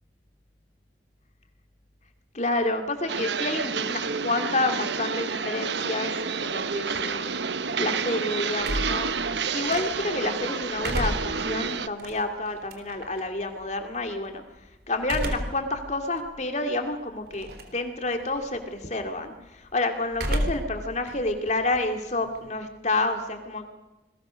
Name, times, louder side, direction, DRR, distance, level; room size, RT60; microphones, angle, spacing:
voice 1, 2.3-6.2 6.4-7.4 7.8-9.1 9.5-14.4 14.9-23.7, left 2 dB, 40° left, 6 dB, 2.4 m, -29 dB
sound 1, 3.1-11.9, right 5 dB, 75° right, 1.1 m, -29 dB
sound 2, 8.6-10.2 10.6-13.2 15.0-15.7 16.2-16.3 17.3-17.8 18.1-18.6 20.1-20.8 21.1-22.5, equal, 60° right, 3.5 m, -31 dB
27.5 x 21.5 x 6.4 m, 1.0 s
head